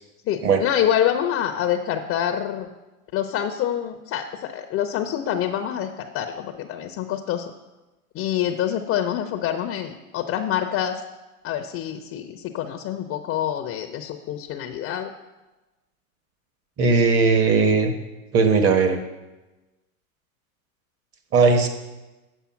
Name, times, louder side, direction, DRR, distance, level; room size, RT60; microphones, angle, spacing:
voice 1, 0.3-2.7 3.1-7.5 8.1-11.0 11.4-15.1, left 10 dB, 30° left, 6 dB, 0.6 m, -26 dB
voice 2, 16.8-17.9 18.3-19.0 21.3-21.7, right 4 dB, 35° right, 6 dB, 1.3 m, -18 dB
7.2 x 7.0 x 5.8 m, 1.1 s
hypercardioid pair, 115°, 43 cm